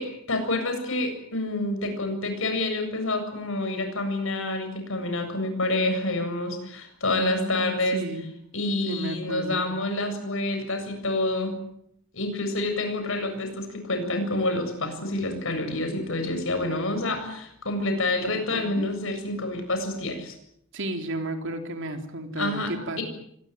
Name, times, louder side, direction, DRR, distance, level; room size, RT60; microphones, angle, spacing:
voice 1, 0.0-8.0 8.5-11.5 12.1-20.4 22.4-22.7 23.0-23.1, left 2 dB, 65° left, 7 dB, 7.5 m, -28 dB
voice 2, 7.1-8.3 8.9-9.7 18.3-18.9 20.7-23.0, right 1 dB, 60° right, 6 dB, 3.5 m, -33 dB
25.0 x 20.0 x 9.1 m, 0.72 s
head